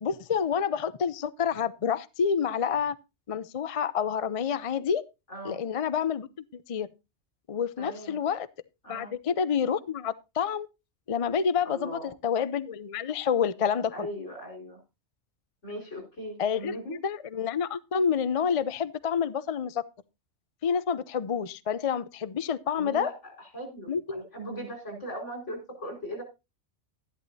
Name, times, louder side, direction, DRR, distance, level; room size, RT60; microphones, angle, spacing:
voice 1, 0.0-3.0 3.3-5.0 5.4-6.3 6.5-6.9 7.5-8.5 8.9-10.7 11.1-14.1 16.4-19.8 20.6-23.1 23.9-24.3, left 7 dB, 40° left, 0.5 m, -28 dB
voice 2, 7.8-8.2 8.8-9.1 11.6-12.1 13.9-14.8 15.6-16.9 22.8-26.2, equal, 85° left, 5.2 m, -39 dB
13.0 x 11.0 x 2.7 m
omnidirectional pair, 1.2 m